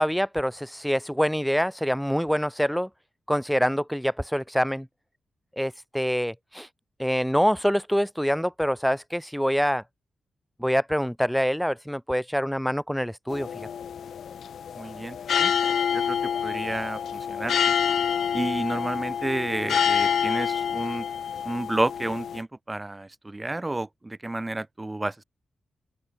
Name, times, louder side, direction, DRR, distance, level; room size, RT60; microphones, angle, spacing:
voice 1, 0.0-2.9 3.3-4.9 5.6-6.7 7.0-9.8 10.6-13.7, equal, ahead, 0.7 m, -25 dB
sound 1, 13.3-22.4, left 8 dB, 75° left, 4.0 m, -27 dB
voice 2, 14.8-15.5 15.9-16.2 16.4-17.7 18.3-21.1 21.5-25.2, right 2 dB, 15° right, 2.0 m, -31 dB
open air
wide cardioid pair, 115°, 0 cm